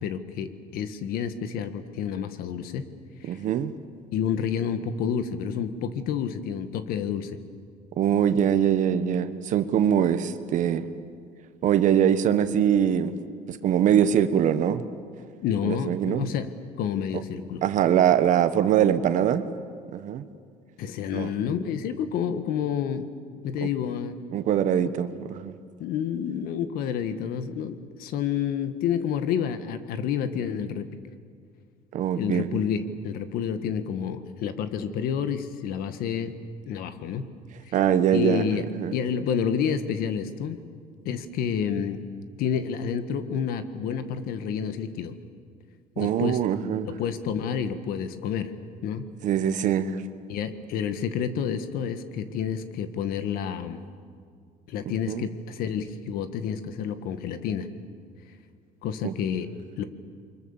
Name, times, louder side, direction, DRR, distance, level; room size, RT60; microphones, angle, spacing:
voice 1, 0.0-2.9 3.2-3.4 4.1-7.4 15.4-16.5 16.8-17.6 20.8-23.1 23.4-24.2 25.8-30.9 32.1-36.3 36.7-37.3 37.7-37.8 38.1-38.7 38.9-40.6 41.0-42.0 42.4-45.1 46.0-46.4 46.8-48.5 48.8-49.1 50.3-53.8 54.7-57.7 58.8-59.5 59.8-59.9, left 8 dB, 70° left, 10 dB, 1.7 m, -29 dB
voice 2, 3.2-3.7 8.0-10.9 11.6-13.2 13.5-14.8 15.6-16.2 17.6-19.4 19.9-20.2 21.1-21.4 24.3-25.6 31.9-32.6 37.7-38.5 38.7-38.9 46.0-46.9 49.2-50.0 54.8-55.3 59.0-59.2, right 9 dB, 55° right, 11 dB, 1.3 m, -23 dB
29.0 x 24.0 x 7.3 m, 2.1 s
cardioid pair, 160°, 16 cm